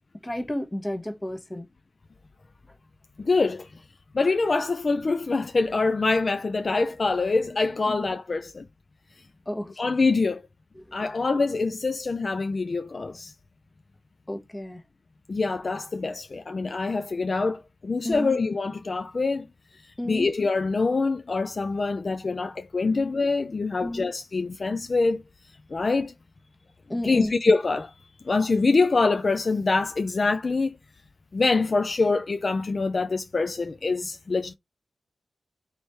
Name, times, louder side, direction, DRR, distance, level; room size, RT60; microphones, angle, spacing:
voice 1, 0.2-1.7 7.9-8.1 9.5-9.7 10.8-11.0 14.3-14.8 18.0-18.4 20.0-20.3 23.8-24.1 26.9-27.3, left 1 dB, 20° left, 1.0 m, -32 dB
voice 2, 3.2-3.7 4.1-8.6 9.8-10.4 10.9-13.3 15.3-19.5 19.8-25.2 25.7-26.1 27.0-27.9 28.3-30.8 31.3-34.5, left 3 dB, 50° left, 0.3 m, -25 dB
3.3 x 3.1 x 4.1 m
cardioid pair, 65°, 0 cm